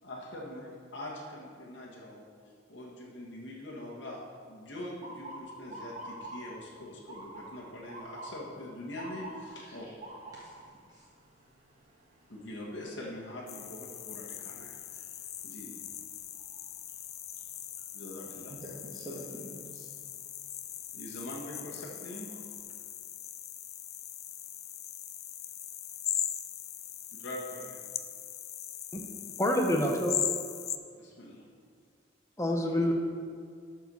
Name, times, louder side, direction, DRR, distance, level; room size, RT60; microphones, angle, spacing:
voice 1, 0.0-2.3 2.7-9.9 12.3-15.1 15.4-15.8 17.9-18.5 20.9-22.3 27.2-27.8 31.0-31.4, left 1 dB, 70° left, -4 dB, 1.6 m, -43 dB
Motor vehicle (road) / Siren, 5.0-16.9 17.4-17.8 18.6-18.9 20.8-21.0 21.5-21.6 22.0-22.7, right 1 dB, 40° right, 1.5 m, -49 dB
voice 2, 9.6-9.9 10.3-11.0 18.5-19.9 32.6-32.8, equal, 20° right, -7 dB, 1.6 m, -46 dB
sound 1, 13.5-30.8, left 10 dB, 35° left, 0.4 m, -40 dB
voice 3, 28.9-30.2 32.4-32.9, left 1 dB, 15° left, 2 dB, 1.0 m, -28 dB
12.5 x 4.7 x 6.3 m, 2.1 s
head